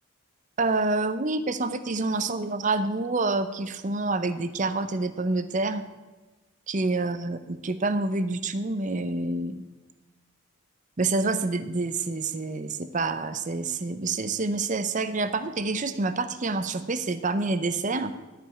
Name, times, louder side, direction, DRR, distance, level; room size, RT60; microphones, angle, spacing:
voice 1, 0.6-5.8 6.7-9.6 11.0-18.1, right 3 dB, 35° right, 11 dB, 0.6 m, -27 dB
12.5 x 5.1 x 8.3 m, 1.2 s
head